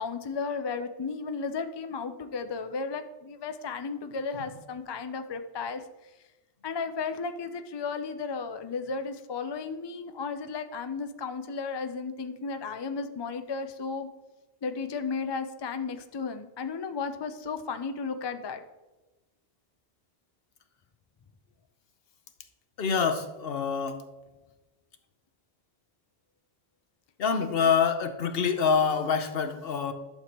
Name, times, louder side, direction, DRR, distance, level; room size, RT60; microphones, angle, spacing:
voice 1, 0.0-5.8 6.6-14.1 14.6-18.6 27.4-27.7, left 5 dB, 40° left, 8 dB, 0.4 m, -34 dB
voice 2, 22.8-24.0 27.2-29.9, left 6 dB, 65° left, 8 dB, 1.0 m, -26 dB
11.5 x 6.7 x 3.0 m, 1.1 s
omnidirectional pair, 1.1 m